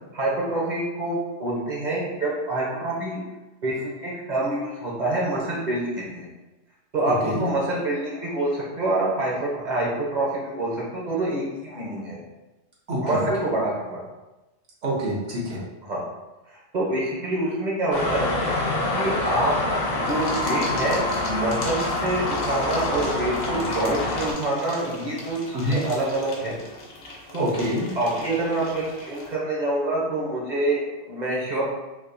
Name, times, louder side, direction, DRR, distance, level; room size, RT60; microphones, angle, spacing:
voice 1, 0.1-3.2 3.6-6.3 6.9-12.2 13.0-14.0 15.8-16.0 16.5-18.3 18.9-19.5 19.9-26.6 27.3-27.5 27.9-31.6, right 2 dB, 40° right, -5 dB, 0.8 m, -26 dB
voice 2, 12.9-13.3 14.8-15.6 25.5-25.8 27.4-27.9, equal, 70° right, -5 dB, 1.2 m, -26 dB
sound 1, 17.9-24.3, left 2 dB, 55° left, 0.5 m, -26 dB
sound 2, 20.1-29.4, left 2 dB, 70° left, 1.0 m, -39 dB
3.5 x 2.5 x 2.6 m, 1.1 s
omnidirectional pair, 1.3 m